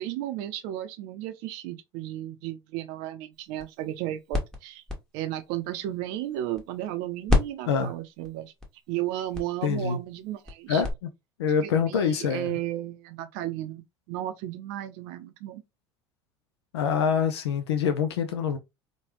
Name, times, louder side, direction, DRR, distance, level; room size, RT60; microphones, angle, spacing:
voice 1, 0.0-4.8 5.1-8.5 8.9-10.8 11.6-15.6, right 13 dB, 65° right, 0.5 m, -34 dB
sound 1, 3.3-7.0 7.3-10.9, left 3 dB, 5° left, 1.1 m, -32 dB
voice 2, 9.6-10.0 10.7-10.9 11.4-12.6 16.7-18.6, left 7 dB, 85° left, 0.4 m, -25 dB
3.1 x 2.2 x 2.9 m
hypercardioid pair, 75°, 13 cm